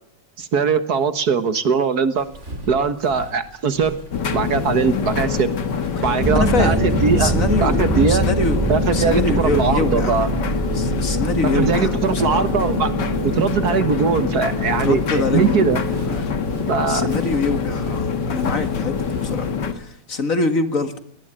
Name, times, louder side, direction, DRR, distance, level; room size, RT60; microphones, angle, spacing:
voice 1, 0.4-2.3 2.7-4.0 4.3-5.5 6.0-7.3 7.6-8.3 8.7-10.3 11.4-12.9 13.2-15.8 16.7-17.1, right 5 dB, 60° right, 11 dB, 1.8 m, -20 dB
Walk footsteps, 2.2-19.5, right 1 dB, 40° right, 4.7 m, -37 dB
sound 1, 4.1-19.7, left 5 dB, 70° left, 2.2 m, -25 dB
voice 2, 6.0-6.9 7.2-10.2 10.7-12.5 14.8-15.8 16.0-16.4 16.9-21.0, left 4 dB, 50° left, 9 dB, 2.1 m, -25 dB
sound 2, 6.2-16.5, right 3 dB, 5° right, 5.5 m, -25 dB
22.0 x 19.0 x 8.9 m, 0.69 s
omnidirectional pair, 2.0 m